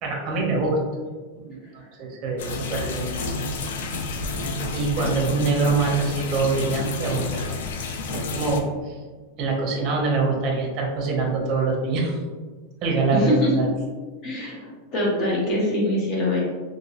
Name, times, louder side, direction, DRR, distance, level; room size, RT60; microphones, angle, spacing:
voice 1, 0.0-0.8 1.3-1.6 1.9-3.2 4.7-7.5 8.1-9.0 9.4-12.2 12.8-13.7, right 3 dB, 30° right, -1 dB, 0.6 m, -24 dB
sound 1, 2.4-8.6, left 2 dB, 80° left, 0.4 m, -29 dB
voice 2, 13.1-13.5 14.2-16.4, left 1 dB, 30° left, -4 dB, 0.7 m, -24 dB
2.9 x 2.7 x 2.8 m, 1.4 s
supercardioid pair, 170°, 0 cm